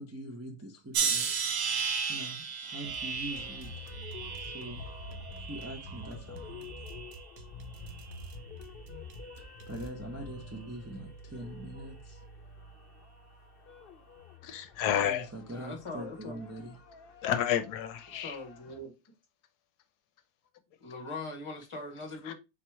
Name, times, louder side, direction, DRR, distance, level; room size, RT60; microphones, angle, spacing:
voice 1, 0.0-1.3 2.1-3.8 4.4-4.9 5.4-6.7 9.4-12.2 15.0-16.8, right 1 dB, 20° right, 0.4 m, -43 dB
sound 1, 0.9-6.1 6.5-7.2 7.9-8.3, right 6 dB, 85° right, 1.4 m, -34 dB
sound 2, 2.8-9.9, right 3 dB, 65° right, 1.1 m, -49 dB
sound 3, 3.3-18.8, left 3 dB, 55° left, 0.6 m, -48 dB
voice 2, 14.4-15.3 17.2-18.4 22.3-22.4, left 10 dB, 75° left, 1.1 m, -30 dB
voice 3, 15.4-16.4 18.1-18.9 20.8-22.3, left 2 dB, 20° left, 1.0 m, -41 dB
4.1 x 2.9 x 4.5 m
omnidirectional pair, 1.7 m